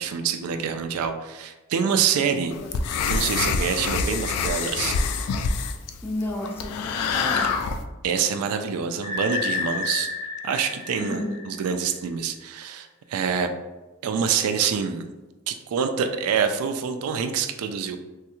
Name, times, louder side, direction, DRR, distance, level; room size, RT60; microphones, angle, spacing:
voice 1, 0.0-2.5 3.1-5.0 8.0-10.1 10.4-11.2 11.5-13.5 14.0-15.1 15.5-18.0, right 7 dB, 75° right, 7 dB, 0.3 m, -26 dB
voice 2, 2.2-2.7 6.0-7.6 11.0-11.4, left 1 dB, 10° left, -2 dB, 0.4 m, -32 dB
sound 1, 2.5-7.8, left 5 dB, 85° left, 0.3 m, -26 dB
sound 2, 9.0-11.9, left 4 dB, 30° left, 1.4 m, -30 dB
3.2 x 2.3 x 2.9 m, 1.1 s
head